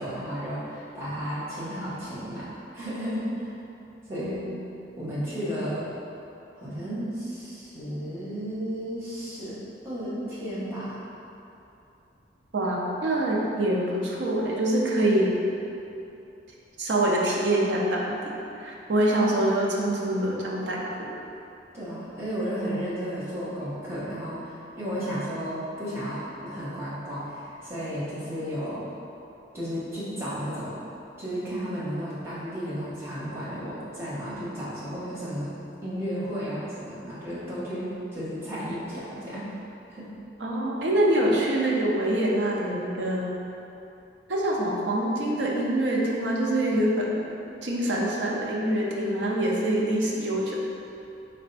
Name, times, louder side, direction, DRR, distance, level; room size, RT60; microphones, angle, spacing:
voice 1, 0.0-2.5 2.7-3.5 4.1-4.4 5.0-5.9 6.5-9.6 9.8-11.0 21.7-28.8 29.5-30.8 31.2-35.5 35.8-39.4 39.9-40.1, equal, 15° right, -11 dB, 0.9 m, -33 dB
voice 2, 4.1-4.6 12.5-15.3 16.8-21.1 40.4-43.4 44.3-47.2 47.6-50.6, right 1 dB, 65° right, -3 dB, 0.6 m, -25 dB
4.3 x 2.2 x 3.9 m, 2.8 s
head